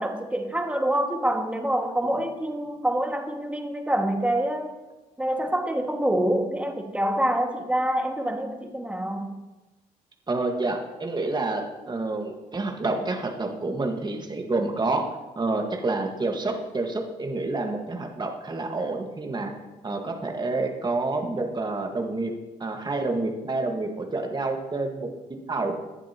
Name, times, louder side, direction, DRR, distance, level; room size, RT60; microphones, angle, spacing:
voice 1, 0.0-4.7 5.2-9.4, right 1 dB, 10° right, 3 dB, 1.8 m, -26 dB
voice 2, 10.3-15.1 15.4-19.5 19.8-22.3 22.6-25.7, right 2 dB, 25° right, 2 dB, 1.6 m, -28 dB
20.5 x 7.2 x 2.9 m, 1.1 s
supercardioid pair, 60°, 16 cm